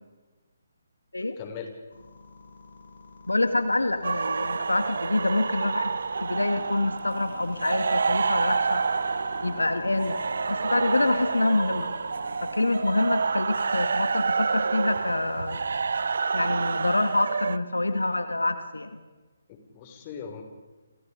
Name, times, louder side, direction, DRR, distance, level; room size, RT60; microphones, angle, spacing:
voice 1, 1.2-1.7 19.5-20.4, left 7 dB, 30° left, 4 dB, 5.9 m, -40 dB
sound 1, 1.9-16.1, left 4 dB, 65° left, 6.9 m, -46 dB
voice 2, 3.3-8.8 9.4-10.2 10.5-11.9 12.4-15.6 16.3-19.0, left 2 dB, 85° left, 10 dB, 2.2 m, -26 dB
sound 2, 4.0-17.6, right 5 dB, 65° right, 0.7 m, -28 dB
30.0 x 28.5 x 5.2 m, 1.3 s
figure-of-eight pair, 145°, 0 cm